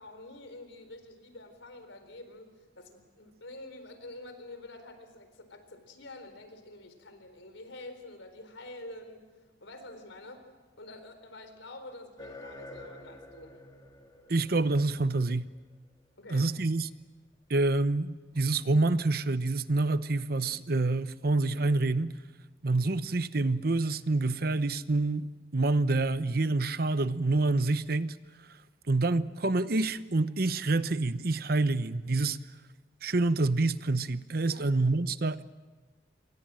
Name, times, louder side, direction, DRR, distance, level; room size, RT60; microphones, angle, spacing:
voice 1, 0.0-9.3 9.6-10.5 10.8-13.6 16.2-16.5 34.5-34.7, left 2 dB, 85° left, 4.2 m, -47 dB
sound 1, 12.2-16.2 17.3-17.4 18.3-18.4, left 1 dB, 20° left, 2.4 m, -49 dB
voice 2, 14.3-15.5 16.3-16.9 17.5-22.1 22.6-28.2 28.9-32.4 33.0-35.4, right 2 dB, 55° right, 0.8 m, -27 dB
27.5 x 24.0 x 7.6 m
head